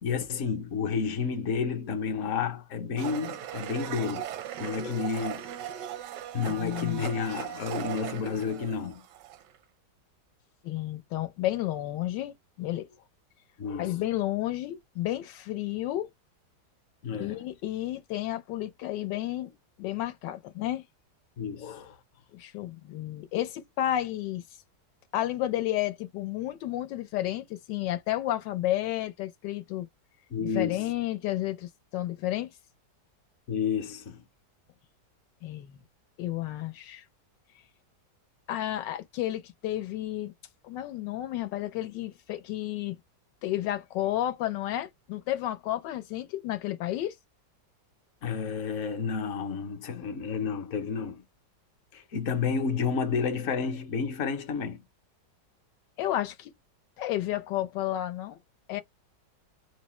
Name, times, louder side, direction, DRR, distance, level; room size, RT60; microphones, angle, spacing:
voice 1, 0.0-4.2 4.6-5.5 6.3-9.0 13.6-14.0 17.0-17.5 21.4-22.0 30.3-30.9 33.5-34.2 48.2-51.3 51.9-54.8, left 6 dB, 55° left, 1.0 m, -31 dB
Domestic sounds home sounds, 3.0-9.6, right 10 dB, 80° right, 1.2 m, -38 dB
voice 2, 6.6-7.1 10.6-12.9 13.8-16.1 17.2-20.9 22.3-24.4 25.1-29.9 30.4-32.5 35.4-35.8 36.2-37.0 38.5-40.3 40.6-43.0 43.4-47.1 56.0-56.5 57.0-58.4 58.7-58.8, left 13 dB, 85° left, 1.3 m, -31 dB
4.8 x 2.1 x 3.0 m
omnidirectional pair, 1.9 m